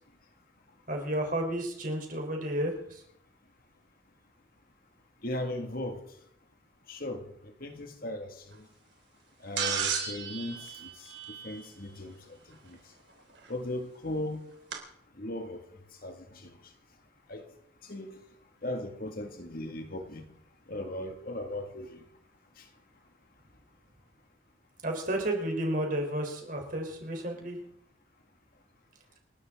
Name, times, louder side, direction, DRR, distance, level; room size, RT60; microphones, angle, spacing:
voice 1, 0.9-3.0 24.8-27.6, right 1 dB, 45° right, 3.7 m, -32 dB
voice 2, 5.2-6.0 6.9-8.6 9.4-10.9 11.4-12.8 13.5-14.4 15.2-15.7 16.0-16.5 17.3-17.5 17.9-18.2 18.6-20.3 20.7-22.0, left 1 dB, 50° left, 1.9 m, -37 dB
sound 1, 9.6-11.9 13.4-13.5 14.7-14.8, right 7 dB, 70° right, 3.4 m, -33 dB
29.0 x 12.0 x 3.7 m
head